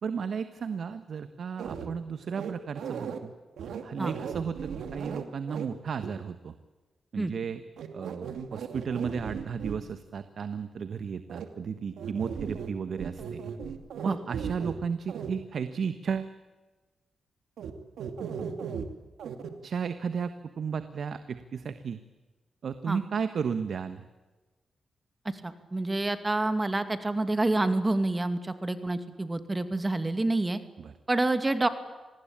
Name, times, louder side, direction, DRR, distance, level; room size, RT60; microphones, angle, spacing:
voice 1, 0.0-3.3 3.8-6.5 7.1-7.6 7.9-13.4 14.0-16.3 19.6-22.0 22.6-24.0 30.8-30.9, right 6 dB, 70° right, 11 dB, 1.3 m, -34 dB
sound 1, 1.6-1.9 2.3-3.2 3.6-5.7 6.0-6.1 7.8-9.8 11.3-11.4 12.0-12.7 13.0-14.8 15.1-15.3 17.6-17.7 18.0-18.8 19.2-19.5, right 7 dB, 90° right, 2.5 m, -36 dB
voice 2, 25.2-30.6 31.1-31.7, right 2 dB, 25° right, 10 dB, 2.4 m, -28 dB
27.0 x 20.0 x 8.8 m, 1.2 s
cardioid pair, 75°, 0 cm